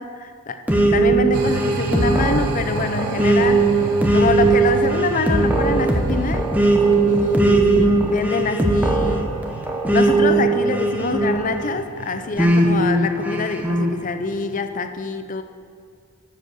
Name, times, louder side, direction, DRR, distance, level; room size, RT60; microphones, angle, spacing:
voice 1, 0.0-6.5 7.0-9.4 9.9-15.4, left 3 dB, 35° left, 8 dB, 0.5 m, -25 dB
sound 1, 0.7-11.8 12.4-13.9, right 2 dB, 5° right, 0.8 m, -19 dB
sound 2, 1.3-14.6, right 4 dB, 90° right, 0.7 m, -33 dB
7.9 x 6.7 x 6.2 m, 2.3 s
head